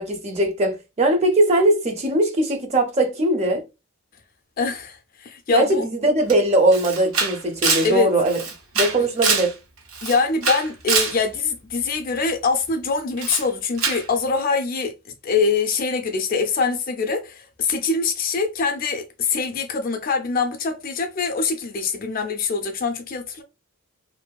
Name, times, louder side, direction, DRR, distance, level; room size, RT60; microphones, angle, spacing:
voice 1, 0.0-3.6 5.5-8.4 8.7-9.5, right 1 dB, 30° right, 0.5 m, -20 dB
voice 2, 4.6-5.9 7.8-8.1 10.0-14.9 15.2-23.4, left 4 dB, 40° left, 0.3 m, -24 dB
Camera, 6.3-6.4 6.7-9.5 9.9-11.2 13.2-13.5 13.8-14.1, right 5 dB, 70° right, 0.6 m, -24 dB
2.5 x 2.2 x 2.2 m
head